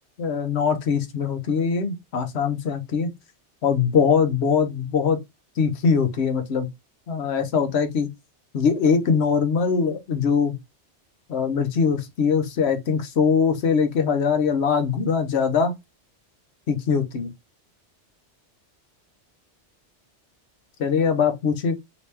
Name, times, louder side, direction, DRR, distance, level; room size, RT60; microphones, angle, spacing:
voice 1, 0.2-3.1 3.6-5.2 5.6-6.7 7.1-8.1 8.5-10.6 11.3-15.7 16.7-17.3 20.8-21.8, left 6 dB, 70° left, 1.1 m, -22 dB
3.0 x 2.9 x 3.2 m
omnidirectional pair, 1.2 m